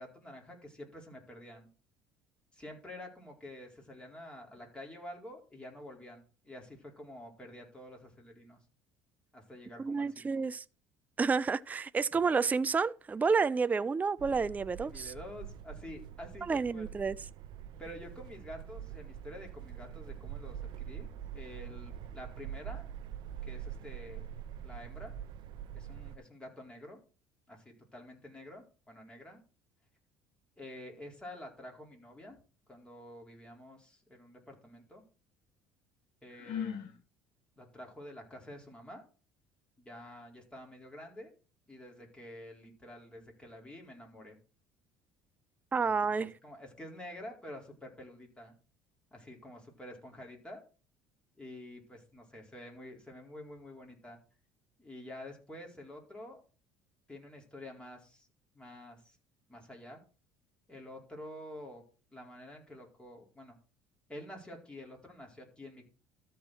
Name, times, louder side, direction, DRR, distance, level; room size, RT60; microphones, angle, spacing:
voice 1, 0.0-1.7 2.5-8.6 9.3-10.3 14.8-16.9 17.8-21.1 21.3-22.9 23.4-24.2 24.6-25.1 25.7-27.0 27.5-29.4 30.6-32.4 32.7-35.0 36.2-37.0 37.6-39.0 39.8-41.3 41.7-44.4 46.0-48.5 49.1-50.6 51.4-54.2 54.8-56.4 57.1-58.3 58.5-59.2 59.5-60.0 60.7-61.8 62.1-63.6 64.1-65.9, left 1 dB, 10° left, 4.2 m, -48 dB
voice 2, 9.8-10.6 11.2-15.1 16.5-17.2 45.7-46.3, right 5 dB, 20° right, 0.4 m, -30 dB
sound 1, 14.2-26.2, right 9 dB, 65° right, 0.8 m, -44 dB
Sigh, 36.3-36.9, left 8 dB, 70° left, 1.7 m, -37 dB
13.5 x 4.6 x 6.3 m
supercardioid pair, 90°, 8 cm